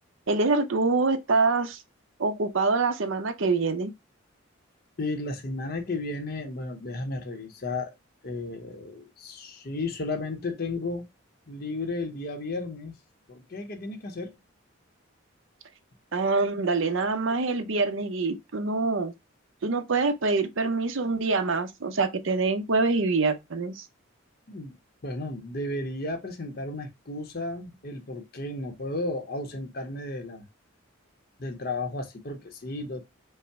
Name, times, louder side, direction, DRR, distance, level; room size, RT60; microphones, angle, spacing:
voice 1, 0.3-1.8 2.2-3.9 16.1-19.1 19.6-23.9, right 3 dB, 65° right, 0.7 m, -25 dB
voice 2, 5.0-7.9 8.2-11.1 11.5-12.9 13.3-14.3 24.5-24.7 25.0-30.4 31.4-33.0, left 2 dB, 45° left, 0.8 m, -33 dB
5.4 x 2.1 x 4.6 m
head